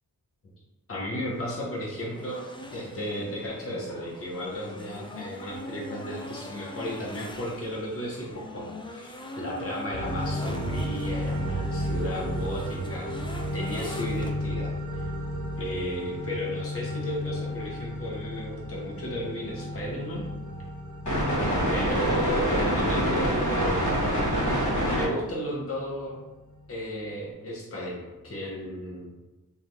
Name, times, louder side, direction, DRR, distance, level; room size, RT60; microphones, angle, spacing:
voice 1, 0.9-2.4 2.7-15.0 15.6-20.2 21.7-24.1 24.8-26.3 26.7-29.1, equal, 40° left, -4 dB, 0.8 m, -34 dB
sound 1, 1.1-14.3, left 1 dB, 15° left, 0.4 m, -43 dB
sound 2, 9.9-25.1, equal, 55° left, 1.2 m, -29 dB
3.0 x 2.4 x 2.6 m, 1.1 s
cardioid pair, 50°, 37 cm